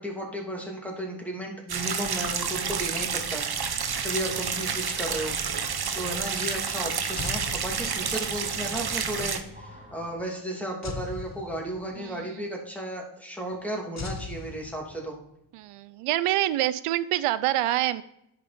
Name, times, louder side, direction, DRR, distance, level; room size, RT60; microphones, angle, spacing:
voice 1, 0.0-5.3 5.9-15.2, right 1 dB, 5° left, -1 dB, 2.8 m, -34 dB
sound 1, 1.7-9.4, right 6 dB, 50° right, 1.1 m, -30 dB
sound 2, 4.2-10.2, left 1 dB, 15° right, 2.6 m, -51 dB
sound 3, 7.1-8.4 10.8-12.1 14.0-15.3, left 5 dB, 30° left, 1.0 m, -38 dB
voice 2, 12.0-12.3 15.5-18.0, right 14 dB, 85° right, 16 dB, 0.6 m, -26 dB
10.5 x 5.4 x 4.3 m, 0.80 s
cardioid pair, 65°, 50 cm